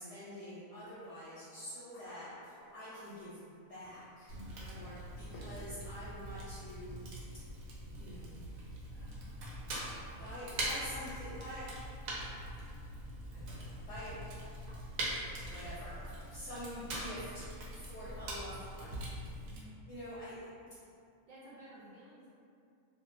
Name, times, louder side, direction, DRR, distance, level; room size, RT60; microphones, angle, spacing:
voice 1, 0.0-2.3 2.7-3.4 3.7-7.1 7.9-8.4 8.9-11.7 13.3-14.1 15.4-19.1 19.9-20.4 21.7-21.8, equal, 65° left, -11 dB, 0.8 m, -47 dB
sound 1, 1.0-1.1 1.4-3.5 3.8-4.4 5.3-6.1, equal, 90° left, 1.0 m, -55 dB
Fire, 4.3-19.6, right 1 dB, 85° right, 1.0 m, -43 dB
voice 2, 4.5-5.0 19.4-19.9 21.3-22.3, right 1 dB, 65° right, -8 dB, 0.7 m, -55 dB
2.5 x 2.1 x 2.5 m, 2.5 s
omnidirectional pair, 1.4 m